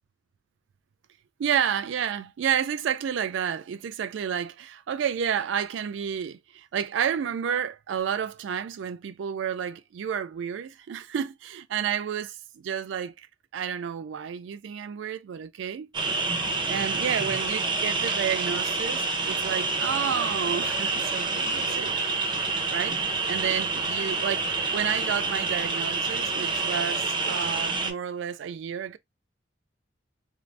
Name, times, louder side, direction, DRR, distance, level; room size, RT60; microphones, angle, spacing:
voice 1, 1.4-13.3 13.5-15.9 16.7-21.9 22.7-23.0 23.3-29.0, right 8 dB, 75° right, 0.3 m, -30 dB
sound 1, 15.9-27.9, right 3 dB, 25° right, 0.5 m, -28 dB
2.5 x 2.0 x 3.2 m
head